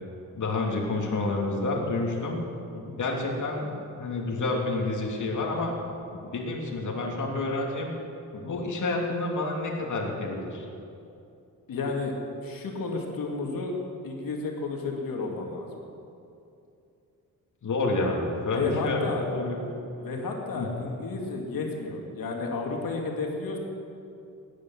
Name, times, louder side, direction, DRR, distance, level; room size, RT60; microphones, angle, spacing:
voice 1, 0.3-2.4 3.0-3.7 4.0-5.7 6.3-7.9 8.5-10.6 17.6-19.6 20.5-20.7, left 2 dB, 60° left, -1 dB, 3.0 m, -29 dB
voice 2, 11.7-12.1 12.4-13.7 14.0-15.7 18.4-19.2 20.0-23.6, left 3 dB, 85° left, 0 dB, 2.6 m, -32 dB
17.0 x 10.5 x 7.5 m, 2.7 s
wide cardioid pair, 120°, 33 cm